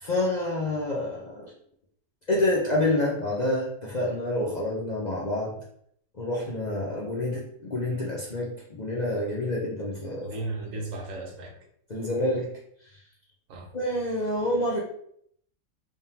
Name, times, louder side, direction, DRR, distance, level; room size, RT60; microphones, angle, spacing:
voice 1, 0.0-1.5 2.3-5.5 6.2-10.3 11.9-12.5 13.7-14.8, left 1 dB, 40° left, -4 dB, 0.6 m, -28 dB
voice 2, 10.2-11.5 13.5-13.7, right 2 dB, 70° right, 1 dB, 1.2 m, -35 dB
3.7 x 3.5 x 2.8 m, 0.67 s
omnidirectional pair, 1.5 m